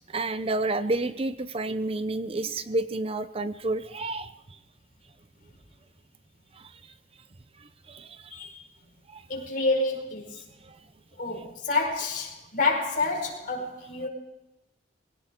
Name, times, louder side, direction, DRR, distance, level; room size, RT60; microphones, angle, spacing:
voice 1, 0.1-4.3 6.6-6.7 7.9-8.2 9.1-9.2 10.7-10.8, right 2 dB, 35° right, 12 dB, 0.6 m, -30 dB
voice 2, 9.3-10.4 11.2-14.1, left 3 dB, 50° left, 1 dB, 5.1 m, -28 dB
22.5 x 17.0 x 3.8 m, 0.97 s
head